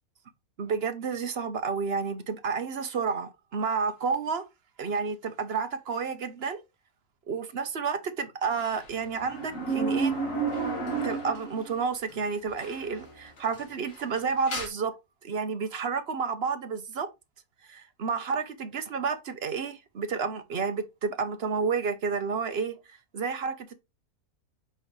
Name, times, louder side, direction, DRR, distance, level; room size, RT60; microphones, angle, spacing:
voice 1, 0.6-4.4 4.8-6.6 7.3-10.1 11.0-14.9 15.2-17.1 17.7-23.7, right 5 dB, 50° right, 0.9 m, -30 dB
sound 1, 8.6-11.8 12.1-12.2 12.6-13.1 13.4-14.7, right 4 dB, 60° left, 2.4 m, -31 dB
7.5 x 5.5 x 3.2 m
omnidirectional pair, 1.6 m